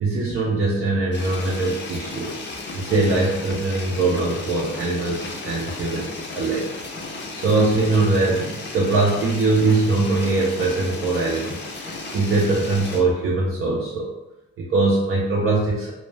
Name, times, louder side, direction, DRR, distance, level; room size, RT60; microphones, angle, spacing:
voice 1, 0.0-2.4 2.7-6.7 7.3-14.1 14.6-15.9, right 3 dB, 45° right, -3 dB, 0.5 m, -22 dB
sound 1, 1.1-13.0, left 3 dB, 40° left, 0.5 m, -34 dB
2.1 x 2.1 x 3.2 m, 0.92 s
cardioid pair, 90°, 30 cm